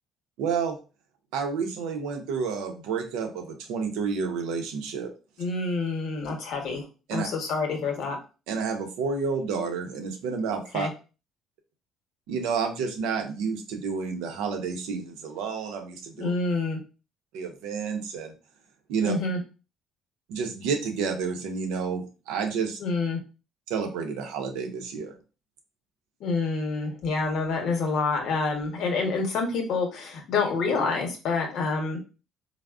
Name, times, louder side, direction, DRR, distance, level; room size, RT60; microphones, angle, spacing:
voice 1, 0.4-0.8 1.3-5.1 7.1-7.3 8.5-10.9 12.3-16.3 17.3-18.3 18.9-19.1 20.3-22.8 23.7-25.1, right 5 dB, 90° right, 5 dB, 0.6 m, -30 dB
voice 2, 5.4-6.8 7.1-8.2 10.7-10.9 16.2-16.8 19.0-19.4 22.8-23.2 26.2-32.0, left 4 dB, 70° left, 3 dB, 0.9 m, -27 dB
3.5 x 2.0 x 2.3 m, 0.33 s
cardioid pair, 95°, 0 cm